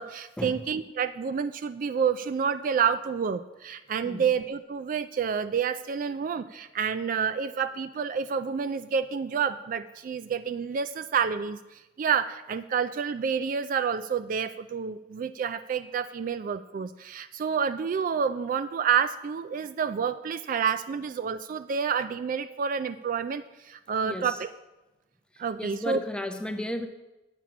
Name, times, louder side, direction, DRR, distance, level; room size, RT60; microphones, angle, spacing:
voice 1, 0.0-24.5 25.4-26.0, right 6 dB, 45° right, 12 dB, 0.3 m, -29 dB
voice 2, 24.0-24.4 25.6-26.9, left 1 dB, 5° left, 6 dB, 0.7 m, -34 dB
8.6 x 7.3 x 6.0 m, 1.0 s
head